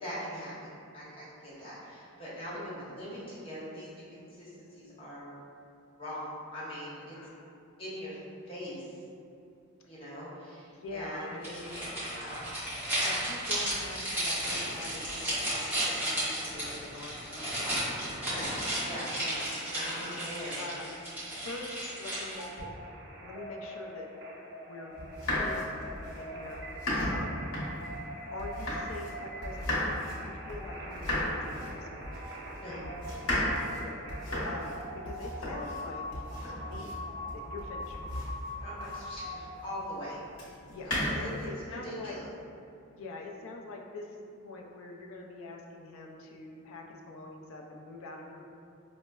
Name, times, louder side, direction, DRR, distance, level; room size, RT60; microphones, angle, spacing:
voice 1, 0.0-5.3 6.0-7.2 7.8-9.0 9.9-11.7 12.1-12.5 18.3-18.6 18.8-19.1 19.6-20.6 26.9-27.1 32.6-33.3 38.6-40.2 41.1-41.3 41.7-42.2, equal, 25° left, -9 dB, 0.9 m, -42 dB
voice 2, 2.5-3.0 7.1-7.5 10.7-11.9 13.0-17.8 19.1-19.5 19.9-20.9 21.3-22.7 23.2-24.1 24.6-24.9 25.3-26.7 27.0-27.4 28.3-32.1 33.4-37.1 37.3-38.2 40.7-40.9 41.2-42.2 42.9-48.4, left 2 dB, 70° left, 0 dB, 0.4 m, -44 dB
sound 1, 11.4-22.6, right 1 dB, 10° right, 1.0 m, -34 dB
sound 2, 22.3-39.6, equal, 55° right, 0.4 m, -43 dB
sound 3, 25.0-29.1 29.4-39.3 40.3-41.5, left 1 dB, 90° left, 1.0 m, -35 dB
5.1 x 2.0 x 2.2 m, 2.6 s
head